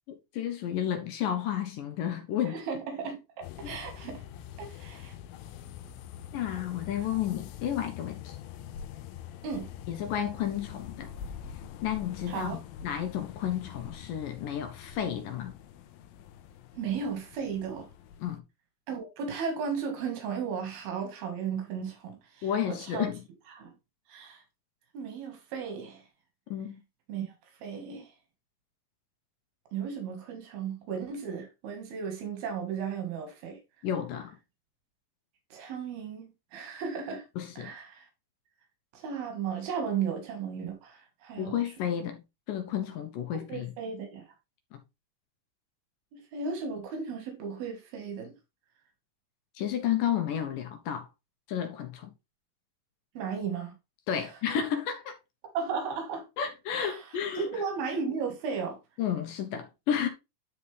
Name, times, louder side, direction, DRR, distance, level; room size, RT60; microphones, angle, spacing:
voice 1, 0.1-2.6 3.6-3.8 6.3-8.4 9.9-11.1 11.8-15.6 18.2-18.4 22.4-23.2 26.5-26.8 33.8-34.4 37.4-37.7 41.4-42.2 42.5-43.7 44.7-44.8 49.6-51.1 51.5-52.1 54.1-55.1 56.4-57.5 59.0-60.1, left 9 dB, 75° left, 2.4 m, -32 dB
voice 2, 2.5-4.2 4.6-5.1 9.4-9.7 12.3-12.6 16.7-17.9 18.9-23.1 23.5-23.7 24.1-24.4 24.9-26.0 27.1-27.3 27.6-28.1 29.7-33.6 35.5-36.2 36.5-37.2 37.6-38.1 38.9-41.6 43.5-44.2 46.1-48.3 53.2-53.8 54.1-54.3 55.5-56.2 56.7-57.1 57.4-58.8, right 6 dB, 90° right, 3.7 m, -35 dB
sound 1, 3.4-18.4, left 9 dB, 90° left, 2.5 m, -45 dB
10.5 x 4.2 x 3.4 m
omnidirectional pair, 4.2 m